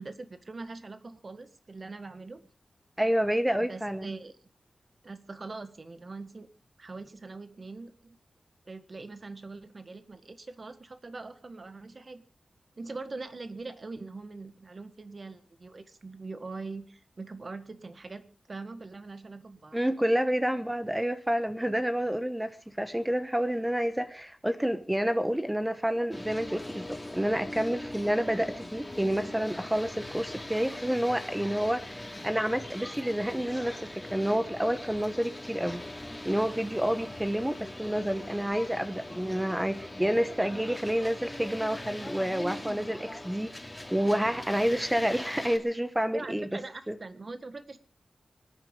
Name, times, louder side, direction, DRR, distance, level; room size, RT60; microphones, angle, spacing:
voice 1, 0.0-2.4 3.6-4.3 5.0-6.5 6.8-8.2 8.7-12.2 12.8-19.8 46.1-47.8, right 3 dB, 45° right, 1.6 m, -42 dB
voice 2, 3.0-4.1 19.7-35.8 36.2-43.5 43.9-46.5 46.9-47.0, equal, 10° right, 1.1 m, -29 dB
sound 1, 26.1-45.6, left 1 dB, 15° left, 2.7 m, -41 dB
24.5 x 9.8 x 5.3 m
wide cardioid pair, 95°, 0 cm